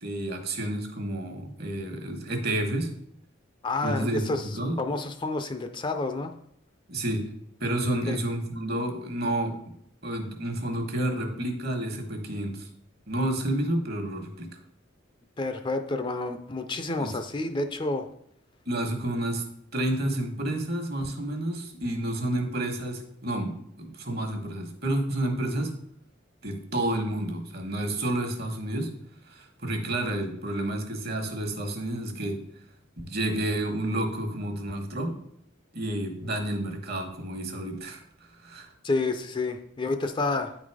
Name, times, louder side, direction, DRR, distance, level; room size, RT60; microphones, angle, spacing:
voice 1, 0.0-2.9 3.8-4.8 6.9-7.3 7.6-9.6 10.0-12.7 13.1-14.5 17.0-17.2 18.7-19.4 19.7-25.8 26.4-28.9 29.3-32.4 33.0-35.2 35.7-38.0 38.4-38.7, right 1 dB, 55° right, 4 dB, 1.4 m, -30 dB
voice 2, 3.6-4.5 4.8-6.3 8.1-8.2 15.4-18.1 38.8-40.6, left 2 dB, 25° left, 7 dB, 0.5 m, -29 dB
9.3 x 4.0 x 4.8 m, 0.72 s
head